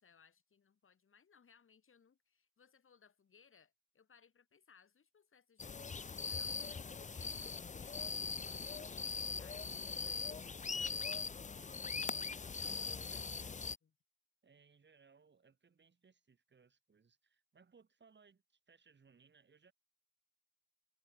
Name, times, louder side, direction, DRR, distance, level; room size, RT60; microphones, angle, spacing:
voice 1, 0.0-11.0 13.8-14.0, left 6 dB, 45° left, 6.8 m, -68 dB
sound 1, 5.6-13.8, left 5 dB, 25° left, 0.9 m, -41 dB
voice 2, 12.6-13.4 14.4-19.7, right 5 dB, 35° right, 7.6 m, -67 dB
cardioid pair, 90°, 30 cm